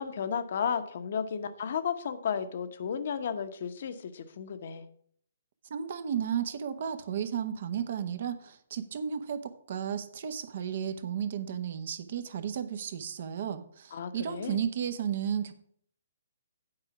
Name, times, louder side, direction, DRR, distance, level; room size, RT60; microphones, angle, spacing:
voice 1, 0.0-4.8 13.9-14.6, left 7 dB, 55° left, 10 dB, 0.9 m, -33 dB
voice 2, 5.7-15.5, right 8 dB, 55° right, 10 dB, 1.0 m, -33 dB
8.9 x 4.9 x 6.9 m, 0.63 s
figure-of-eight pair, 135°, 0 cm